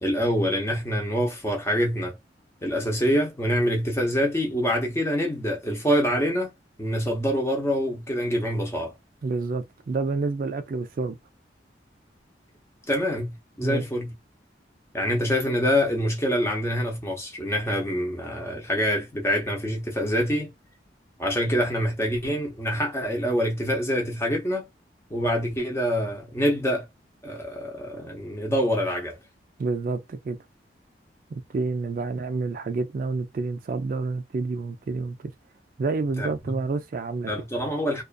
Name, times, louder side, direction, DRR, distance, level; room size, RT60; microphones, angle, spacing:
voice 1, 0.0-2.2 2.6-6.5 6.8-8.9 12.9-14.1 14.9-20.5 21.2-24.7 25.1-26.9 27.2-29.2 36.2-36.6 37.3-38.0, equal, 15° left, 0.7 m, -25 dB
voice 2, 9.2-11.2 13.6-13.8 29.6-30.4 31.5-35.3 35.8-37.3, right 3 dB, 50° right, 0.3 m, -28 dB
2.4 x 2.3 x 2.3 m
head